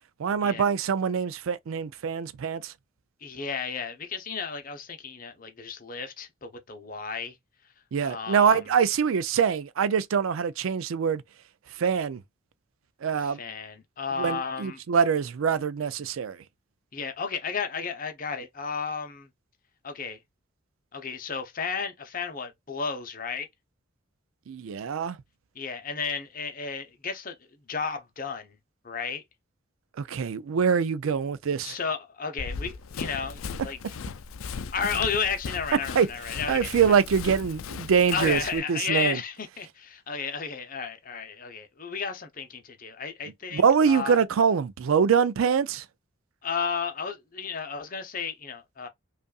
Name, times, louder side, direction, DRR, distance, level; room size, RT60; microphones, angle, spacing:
voice 1, 0.2-2.7 7.9-11.2 11.8-12.2 13.0-13.4 14.2-16.4 24.5-25.2 30.0-31.8 36.0-36.1 36.5-39.2 43.5-45.8, right 6 dB, 85° right, 0.4 m, -24 dB
voice 2, 3.2-7.4 8.0-8.6 13.2-14.8 16.9-19.3 19.8-20.2 20.9-23.5 25.5-27.3 27.7-28.5 28.8-29.2 31.6-33.8 34.7-36.7 38.1-44.2 46.4-48.9, left 5 dB, 40° left, 0.8 m, -33 dB
Run, 32.4-38.6, left 5 dB, 85° left, 0.4 m, -37 dB
5.2 x 2.5 x 2.3 m
head